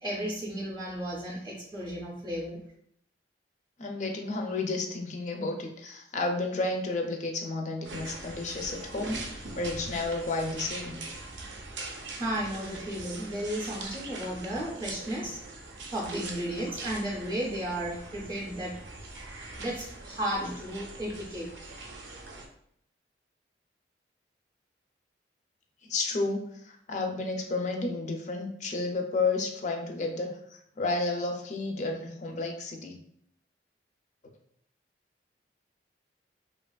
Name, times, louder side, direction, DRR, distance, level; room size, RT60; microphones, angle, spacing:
voice 1, 0.0-2.6 12.1-15.4 15.9-18.8 19.6-21.5, right 1 dB, 25° right, -4 dB, 0.4 m, -34 dB
voice 2, 3.8-11.0 25.8-30.3 30.8-33.0, left 3 dB, 40° left, 2 dB, 0.4 m, -31 dB
sound 1, 7.8-22.5, right 2 dB, 80° right, 0.5 m, -42 dB
2.7 x 2.3 x 2.2 m, 0.69 s
head